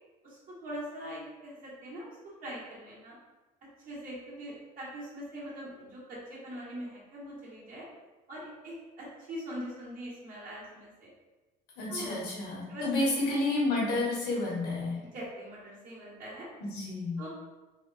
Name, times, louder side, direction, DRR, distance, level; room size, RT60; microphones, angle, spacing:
voice 1, 0.2-3.1 3.8-7.9 8.3-11.1 11.9-12.1 12.7-12.9 15.0-16.5 17.2-17.3, equal, 55° right, -7 dB, 1.4 m, -42 dB
voice 2, 11.8-15.0 16.6-17.2, left 2 dB, 90° left, -4 dB, 1.2 m, -30 dB
3.5 x 2.4 x 2.5 m, 1.1 s
cardioid pair, 110°, 17 cm